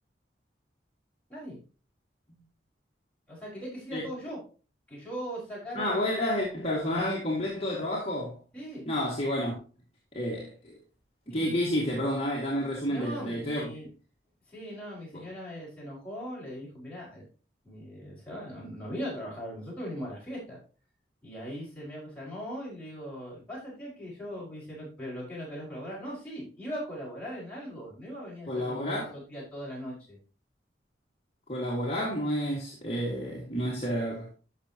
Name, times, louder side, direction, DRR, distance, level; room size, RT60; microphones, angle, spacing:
voice 1, 3.3-4.4 4.9-6.1 8.5-8.9 11.3-11.6 12.9-13.9 14.5-17.3 17.6-20.6 21.2-30.2, equal, 5° left, 5.5 m, -39 dB
voice 2, 5.7-8.4 8.9-9.5 10.1-10.7 11.3-13.7 15.1-15.2 28.5-29.1 31.5-34.3, equal, 30° left, 2.1 m, -30 dB
12.0 x 6.4 x 2.9 m
head